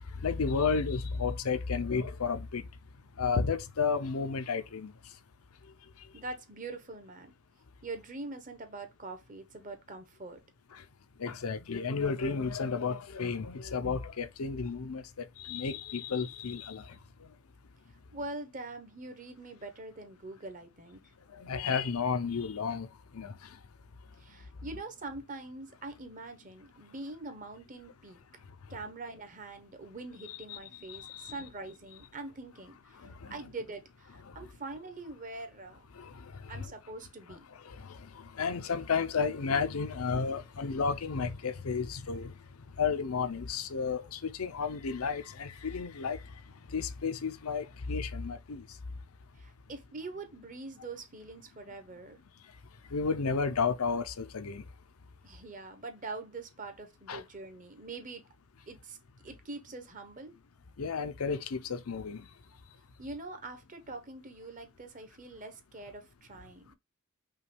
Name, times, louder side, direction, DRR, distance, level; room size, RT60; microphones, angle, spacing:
voice 1, 0.2-2.6 3.2-4.9 10.7-10.8 11.2-16.8 21.4-22.9 23.1-23.3 30.3-30.6 30.9-31.4 33.0-33.4 36.0-36.1 36.5-36.7 37.6-42.3 42.8-46.2 46.7-48.6 52.9-54.6 57.1-57.2 60.8-62.3, left 5 dB, 85° left, 0.6 m, -32 dB
voice 2, 6.1-7.3 7.8-10.4 18.1-21.0 24.2-28.2 28.7-33.0 33.3-35.8 36.5-37.5 49.4-52.2 55.2-58.2 58.7-59.0 59.2-60.3 63.0-66.7, right 3 dB, 35° right, 1.0 m, -44 dB
5.5 x 2.3 x 3.3 m
head